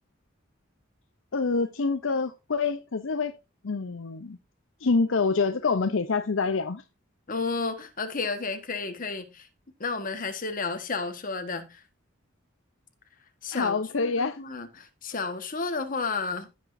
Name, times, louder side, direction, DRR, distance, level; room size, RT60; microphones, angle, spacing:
voice 1, 1.3-3.4 3.6-4.4 4.8-6.8 13.5-14.4, left 4 dB, 70° left, 0.7 m, -26 dB
voice 2, 7.3-9.5 9.8-11.8 13.4-16.5, left 4 dB, 45° left, 1.5 m, -32 dB
15.5 x 6.1 x 2.7 m
head